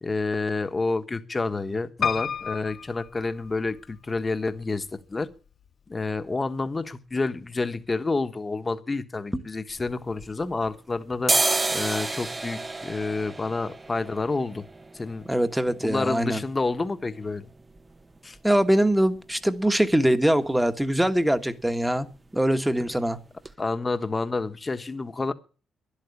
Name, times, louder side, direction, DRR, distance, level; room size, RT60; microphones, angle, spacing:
voice 1, 0.0-5.3 5.9-11.4 11.7-14.6 14.9-15.3 15.8-17.5 18.2-18.4 22.8-22.9 23.6-25.3, left 3 dB, 25° left, 1.3 m, -29 dB
Piano, 2.0-4.0 4.6-5.3 5.7-5.8 6.0-6.1, left 7 dB, 50° left, 0.7 m, -31 dB
sound 1, 9.7-10.8 11.1-18.8 19.1-19.2 19.5-20.1 20.4-20.6 20.8-21.1 21.4-22.1 22.4-22.6 23.1-23.2 23.4-23.5, right 2 dB, 20° right, 0.9 m, -31 dB
voice 2, 15.3-16.4 18.4-22.1 22.3-23.2, right 1 dB, 5° right, 1.4 m, -23 dB
12.0 x 11.0 x 8.5 m
cardioid pair, 90°, 0 cm